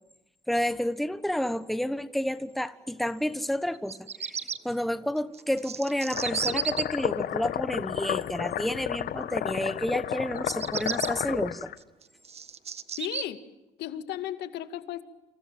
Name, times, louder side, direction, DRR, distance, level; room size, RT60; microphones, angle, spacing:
voice 1, 0.5-4.4 4.6-11.7, left 1 dB, ahead, 13 dB, 1.2 m, -30 dB
Bird vocalization bird call bird song, 3.7-4.6 5.3-6.8 10.4-11.1 11.8-13.2, right 7 dB, 40° right, 1.5 m, -33 dB
sound 1, 6.1-11.7, left 11 dB, 65° left, 1.6 m, -32 dB
voice 2, 13.0-13.4 13.8-15.0, left 12 dB, 80° left, 10 dB, 2.3 m, -35 dB
29.0 x 27.5 x 7.5 m, 0.98 s
cardioid pair, 110°, 17 cm